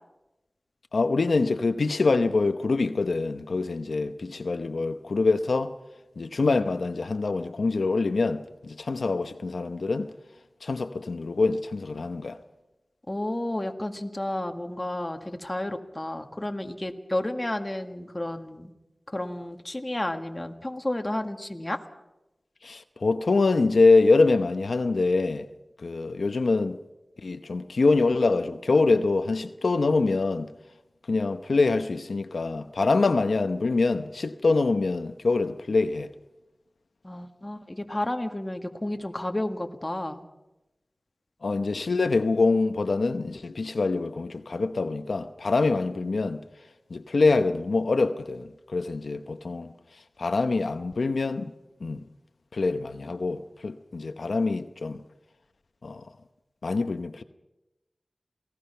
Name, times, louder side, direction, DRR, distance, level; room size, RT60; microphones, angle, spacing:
voice 1, 0.9-5.7 6.2-10.1 10.6-12.4 22.6-25.5 25.8-26.8 27.2-30.5 31.1-36.1 41.4-46.4 46.9-49.7 50.2-51.5 51.8-52.0 52.5-55.0 55.8-56.1 56.6-57.2, left 3 dB, 85° left, 0.8 m, -25 dB
voice 2, 13.1-18.7 19.1-21.8 37.0-40.2, left 1 dB, 25° left, 1.9 m, -31 dB
28.0 x 18.5 x 5.7 m
wide cardioid pair, 50°, 0 cm